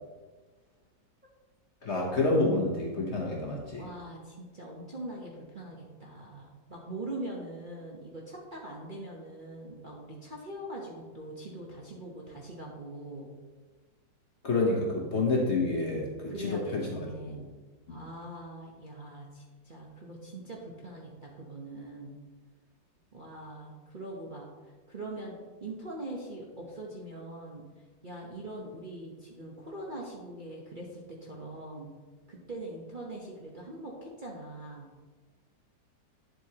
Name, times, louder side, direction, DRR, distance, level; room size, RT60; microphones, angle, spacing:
voice 1, 1.8-3.9 14.4-16.9 17.3-17.5 17.9-18.0, left 2 dB, 45° left, -1 dB, 1.1 m, -28 dB
voice 2, 3.8-13.3 16.3-17.4 17.9-22.1 23.1-24.5 24.9-27.6 28.0-31.9 32.3-34.9, right 1 dB, 35° right, -3 dB, 0.9 m, -42 dB
9.4 x 7.7 x 2.9 m, 1.3 s
omnidirectional pair, 2.0 m